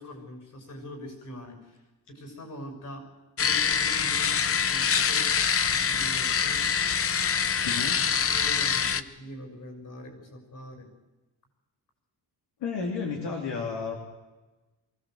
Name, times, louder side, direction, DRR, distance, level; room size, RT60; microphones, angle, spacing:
voice 1, 0.0-3.0 3.4-5.3 5.7-6.6 8.0-10.9, equal, 50° left, 5 dB, 6.6 m, -43 dB
sound 1, 3.4-9.0, left 7 dB, 35° left, 0.8 m, -25 dB
voice 2, 7.6-8.0 12.6-13.9, left 5 dB, 80° left, 1 dB, 3.2 m, -32 dB
24.0 x 16.0 x 7.9 m, 1.1 s
cardioid pair, 140°, 40 cm